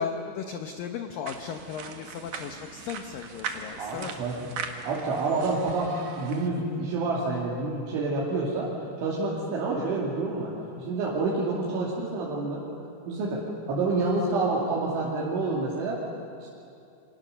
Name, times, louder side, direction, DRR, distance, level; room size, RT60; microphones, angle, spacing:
voice 1, 0.0-4.2, left 7 dB, 80° left, 5 dB, 2.0 m, -36 dB
sound 1, 1.3-6.5, right 6 dB, 60° right, 2.3 m, -40 dB
voice 2, 3.8-4.5 4.8-8.7 9.0-10.5 10.8-12.6 13.1-13.4 13.7-16.0, right 3 dB, 85° right, -6 dB, 5.1 m, -28 dB
29.0 x 24.5 x 6.7 m, 2.6 s
omnidirectional pair, 5.4 m